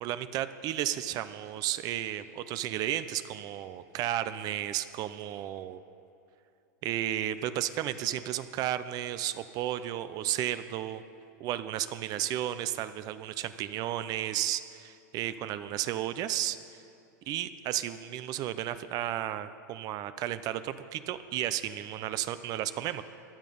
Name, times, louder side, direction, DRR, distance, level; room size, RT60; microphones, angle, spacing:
voice 1, 0.0-5.8 6.8-11.0 11.4-16.6 17.3-23.0, right 12 dB, 40° right, 12 dB, 0.6 m, -33 dB
16.0 x 10.5 x 5.4 m, 2.8 s
hypercardioid pair, 115°, 10 cm